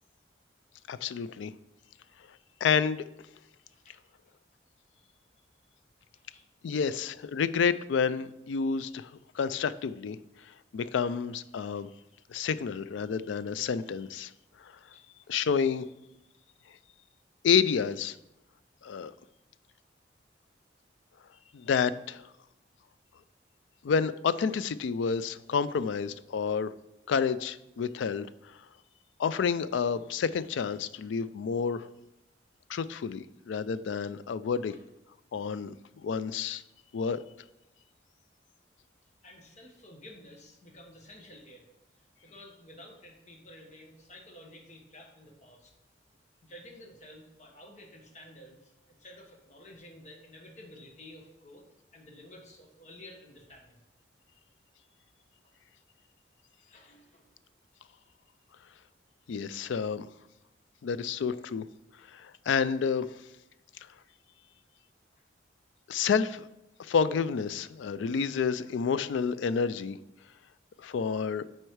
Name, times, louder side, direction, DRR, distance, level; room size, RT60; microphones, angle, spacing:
voice 1, 0.9-1.5 2.6-3.0 6.6-10.2 10.4-11.9 12.3-14.3 14.6-14.7 15.3-15.8 17.4-18.2 18.8-19.1 21.5-22.2 23.8-26.7 27.1-28.6 29.2-31.9 32.7-34.7 35.3-35.7 36.0-36.6 36.9-37.2 59.3-60.1 60.8-61.6 62.1-63.1 65.9-66.5 66.8-70.0 70.8-71.4, left 6 dB, 80° left, 15 dB, 0.3 m, -29 dB
voice 2, 3.7-4.1 6.1-6.4 14.9-15.3 39.2-41.7 41.9-45.7 46.4-51.6 51.9-53.8 56.6-57.3 65.1-65.2, left 1 dB, 40° left, 1 dB, 1.3 m, -52 dB
7.8 x 4.4 x 4.7 m, 0.92 s
head